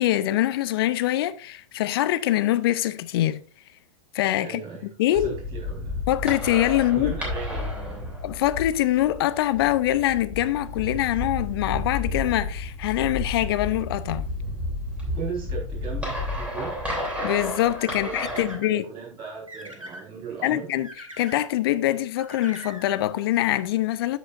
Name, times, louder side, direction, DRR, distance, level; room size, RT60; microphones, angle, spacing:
voice 1, 0.0-3.4 4.1-4.6 5.0-5.4 6.1-7.1 8.2-14.3 17.2-18.8 20.4-20.9 21.2-24.2, left 14 dB, 50° left, 0.6 m, -24 dB
voice 2, 4.4-6.0 6.8-8.2 15.1-16.7 17.9-20.7, right 7 dB, 30° right, 4.5 m, -37 dB
sound 1, 5.1-18.5, left 2 dB, 5° right, 3.0 m, -32 dB
sound 2, 16.8-17.4 17.8-18.7 19.2-20.0 20.8-21.4 22.2-23.0, right 1 dB, 85° right, 1.7 m, -41 dB
13.0 x 5.1 x 2.5 m
figure-of-eight pair, 100°, 16 cm